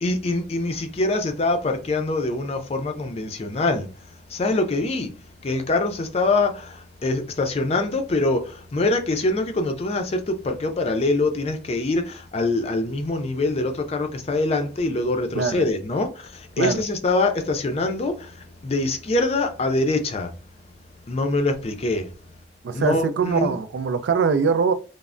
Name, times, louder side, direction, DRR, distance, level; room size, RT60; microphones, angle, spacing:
voice 1, 0.0-20.6 21.1-22.1 22.7-23.5, left 2 dB, 35° left, 0.4 m, -24 dB
voice 2, 15.3-15.7 16.6-16.8 22.6-24.7, right 5 dB, 90° right, 0.3 m, -22 dB
3.1 x 2.0 x 2.4 m
head